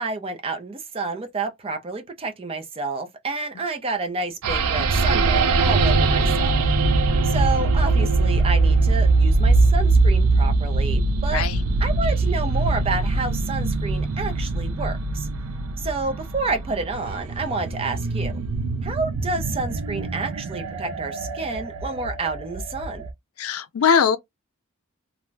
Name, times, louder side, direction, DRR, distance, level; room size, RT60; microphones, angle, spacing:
voice 1, 0.0-6.5 7.2-11.4 11.8-15.3 15.8-18.3 18.8-23.0, right 3 dB, 25° right, 0.5 m, -29 dB
sound 1, 4.4-23.1, right 3 dB, 90° right, 0.5 m, -22 dB
voice 2, 23.4-24.2, left 6 dB, 75° left, 0.4 m, -20 dB
2.5 x 2.2 x 3.1 m
head